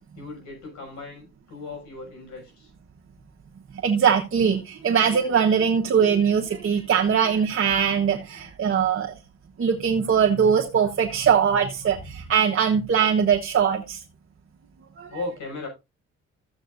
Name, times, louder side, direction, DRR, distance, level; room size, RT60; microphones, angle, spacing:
voice 1, 0.1-2.7 7.2-7.4 8.3-8.5 15.1-15.7, left 3 dB, 70° left, 6.6 m, -37 dB
voice 2, 3.8-9.1 9.6-14.0 15.0-15.1, right 7 dB, 45° right, 1.2 m, -21 dB
13.5 x 7.9 x 2.6 m
cardioid pair, 90°, 30 cm